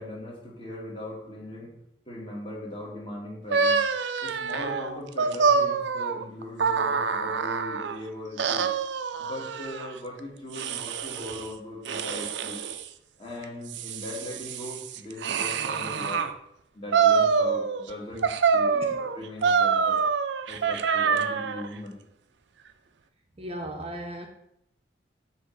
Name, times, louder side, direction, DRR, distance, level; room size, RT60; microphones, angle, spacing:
voice 1, 0.0-1.7 2.1-3.8 4.2-8.7 9.2-12.6 13.2-16.3 16.7-20.0 20.5-22.0, left 1 dB, 30° left, -3 dB, 1.8 m, -39 dB
sound 1, 3.5-8.0 8.4-9.9 10.5-11.5 11.8-12.9 13.4-16.3 16.9-17.9 18.2-21.7, right 5 dB, 70° right, 0.5 m, -26 dB
voice 2, 23.4-24.3, right 1 dB, 30° right, 3 dB, 0.7 m, -36 dB
7.9 x 3.1 x 5.7 m, 0.79 s
head